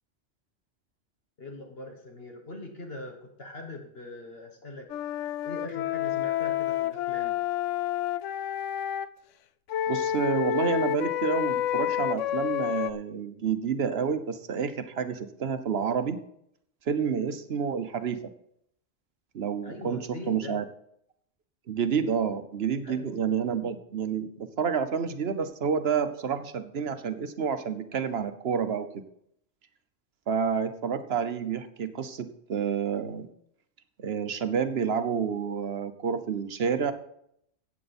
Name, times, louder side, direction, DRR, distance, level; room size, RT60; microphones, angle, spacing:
voice 1, 1.4-4.9 5.4-7.4 19.6-20.6 22.8-23.2, left 2 dB, 55° left, 2 dB, 1.6 m, -41 dB
Wind instrument woodwind instrument, 4.9-9.1 9.7-12.9, left 11 dB, 85° left, 0.9 m, -29 dB
voice 2, 9.9-16.2 16.9-18.2 19.3-20.0 20.3-20.7 21.7-29.0 30.3-33.3 34.0-36.9, right 6 dB, 60° right, 10 dB, 1.1 m, -29 dB
14.5 x 8.6 x 4.2 m, 0.72 s
omnidirectional pair, 1.2 m